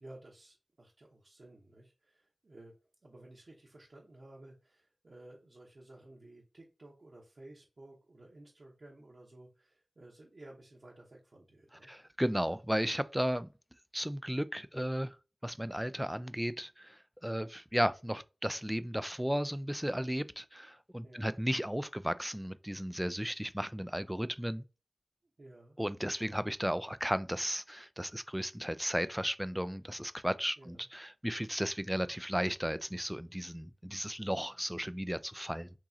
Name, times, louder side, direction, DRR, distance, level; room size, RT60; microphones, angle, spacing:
voice 1, 0.0-2.8 3.0-11.9 21.0-21.4 25.4-25.8 30.6-30.9 31.9-32.1, right 1 dB, 60° right, 1.0 m, -55 dB
voice 2, 11.9-13.5 13.9-15.2 15.4-24.6 25.8-35.7, equal, 5° right, 0.3 m, -34 dB
4.6 x 3.0 x 2.8 m
wide cardioid pair, 55°, 0 cm